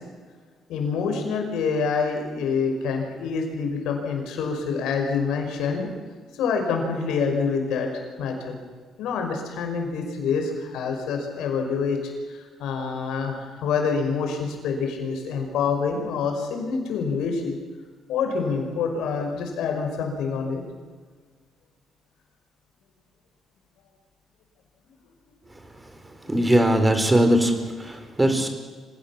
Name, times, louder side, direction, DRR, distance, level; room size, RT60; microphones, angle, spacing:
voice 1, 0.7-5.9 6.3-8.6 9.0-12.0 12.3-17.6 18.1-20.6, left 5 dB, 85° left, 3 dB, 5.5 m, -26 dB
voice 2, 26.3-28.5, right 1 dB, 15° right, 7 dB, 4.2 m, -20 dB
26.0 x 17.5 x 7.3 m, 1.5 s
cardioid pair, 90°, 0 cm